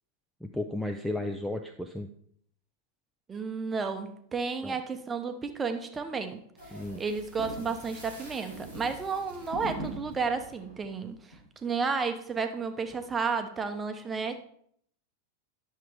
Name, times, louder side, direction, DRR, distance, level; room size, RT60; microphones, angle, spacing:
voice 1, 0.4-2.1 4.6-4.8 6.7-7.0, left 1 dB, ahead, 6 dB, 0.5 m, -34 dB
voice 2, 3.3-6.4 6.7-14.4, right 5 dB, 15° right, 8 dB, 0.8 m, -32 dB
sound 1, 6.6-11.4, equal, 85° left, 3.7 m, -43 dB
10.0 x 6.5 x 3.5 m, 0.66 s
figure-of-eight pair, 90°, 0 cm